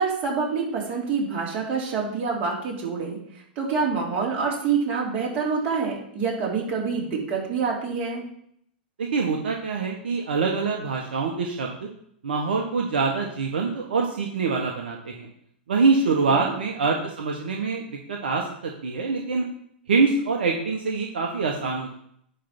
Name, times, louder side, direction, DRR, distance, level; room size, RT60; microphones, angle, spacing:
voice 1, 0.0-8.2 16.1-16.5, right 5 dB, 40° right, -2 dB, 3.2 m, -27 dB
voice 2, 9.0-11.9 12.2-15.3 15.7-17.8 18.1-19.4 19.9-21.9, right 4 dB, 75° right, 1 dB, 1.2 m, -25 dB
9.9 x 3.4 x 6.0 m, 0.68 s
hypercardioid pair, 105°, 6 cm